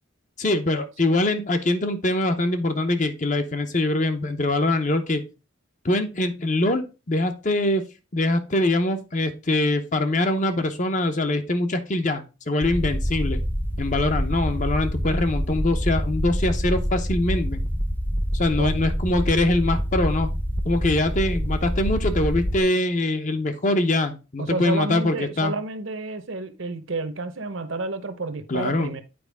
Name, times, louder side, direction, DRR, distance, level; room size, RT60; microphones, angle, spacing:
voice 1, 0.4-5.2 5.8-7.8 8.1-13.4 13.8-17.6 18.3-20.3 20.6-25.5 28.5-28.9, left 2 dB, 35° left, 0.8 m, -23 dB
sound 1, 12.6-22.6, equal, 10° left, 0.7 m, -26 dB
voice 2, 18.6-18.9 24.4-29.0, right 3 dB, 70° right, 0.9 m, -30 dB
8.8 x 4.6 x 3.5 m
head